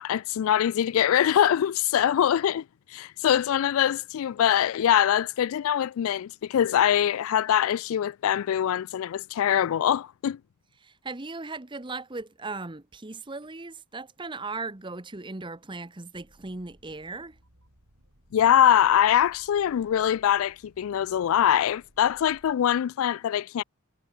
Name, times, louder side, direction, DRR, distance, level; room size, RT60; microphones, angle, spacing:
voice 1, 0.0-2.6 2.9-10.4 18.3-23.6, left 10 dB, 70° left, 0.3 m, -23 dB
voice 2, 10.8-17.4, right 3 dB, 20° right, 0.9 m, -37 dB
sound 1, 16.1-22.5, equal, 80° right, 5.4 m, -60 dB
head